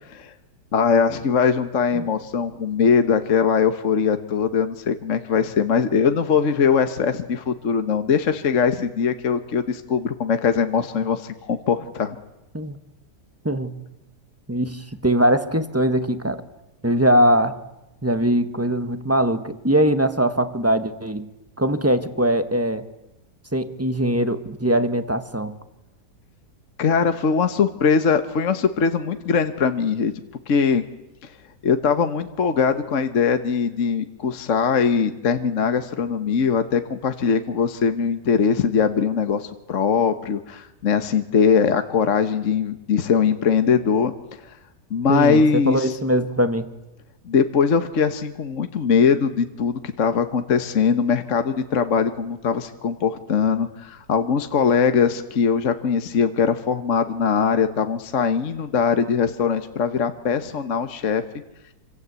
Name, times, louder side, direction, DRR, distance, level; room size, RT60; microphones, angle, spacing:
voice 1, 0.7-12.2 26.8-30.1 30.5-30.8 31.2-31.3 31.6-44.4 44.9-45.9 47.2-61.2, left 6 dB, 50° left, 8 dB, 1.5 m, -21 dB
voice 2, 13.4-13.8 14.5-16.4 16.8-17.6 18.0-21.3 21.6-22.9 23.5-25.5 45.1-46.7, right 1 dB, 10° right, 9 dB, 1.3 m, -21 dB
27.5 x 26.0 x 8.3 m, 0.95 s
omnidirectional pair, 1.8 m